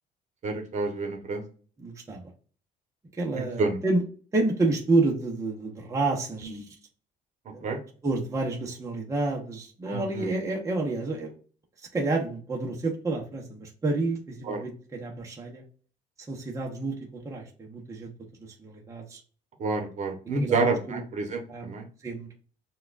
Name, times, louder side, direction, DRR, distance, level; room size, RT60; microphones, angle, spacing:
voice 1, 0.4-1.4 3.4-3.8 6.4-6.6 7.6-7.8 9.9-10.3 14.4-14.6 19.6-21.9, right 3 dB, 45° right, 4 dB, 1.1 m, -29 dB
voice 2, 1.8-2.3 3.1-4.0 4.3-6.7 7.5-11.3 11.9-15.6 16.3-18.1 18.4-19.2 20.4-21.0 21.5-21.7 22.0-22.3, right 2 dB, 20° right, -1 dB, 0.8 m, -29 dB
5.8 x 2.3 x 2.5 m, 0.41 s
cardioid pair, 110°, 17 cm